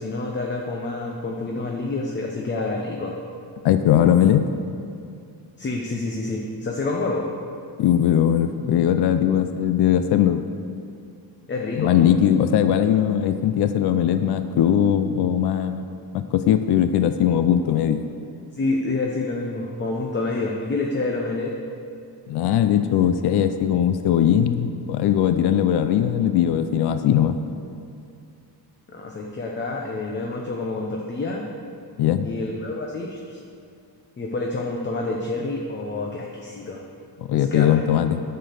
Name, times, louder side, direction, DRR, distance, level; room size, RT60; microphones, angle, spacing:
voice 1, 0.0-3.2 5.6-7.3 11.5-11.9 18.5-21.6 28.9-31.5 32.2-33.4 34.2-36.8 37.3-37.7, left 3 dB, 25° left, 0 dB, 0.8 m, -28 dB
voice 2, 3.6-4.5 7.8-10.4 11.8-15.8 16.1-18.0 22.3-27.4 32.0-32.3 37.3-38.2, left 10 dB, 70° left, 9 dB, 0.6 m, -20 dB
11.0 x 6.8 x 6.7 m, 2.5 s
cardioid pair, 165°, 41 cm